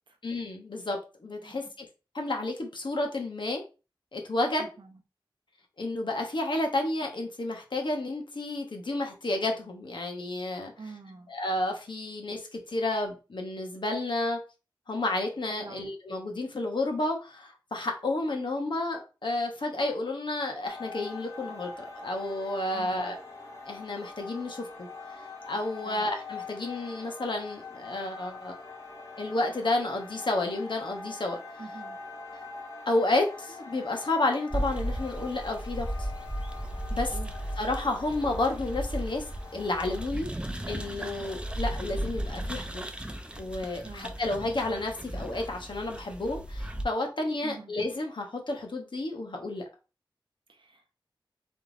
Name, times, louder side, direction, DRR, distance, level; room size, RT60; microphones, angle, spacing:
voice 1, 0.2-1.8 2.1-3.6 4.1-4.6 5.8-10.7 11.3-14.4 14.9-23.2 23.7-24.9 25.5-28.5 29.2-31.4 32.9-36.1 36.9-37.1 37.6-39.2 39.5-40.3 40.7-42.9 43.4-49.6, left 2 dB, 60° left, 1.2 m, -31 dB
voice 2, 4.6-5.0 10.8-11.3 15.6-15.9 22.7-23.2 25.8-26.1 31.6-32.0 36.9-37.3 43.8-44.2 47.4-47.7 50.5-50.9, right 4 dB, 65° right, 1.0 m, -46 dB
sound 1, 20.7-40.1, left 3 dB, 35° left, 1.6 m, -44 dB
sound 2, 34.5-46.8, right 1 dB, 10° right, 0.6 m, -35 dB
3.7 x 3.3 x 3.9 m
wide cardioid pair, 60°, 9 cm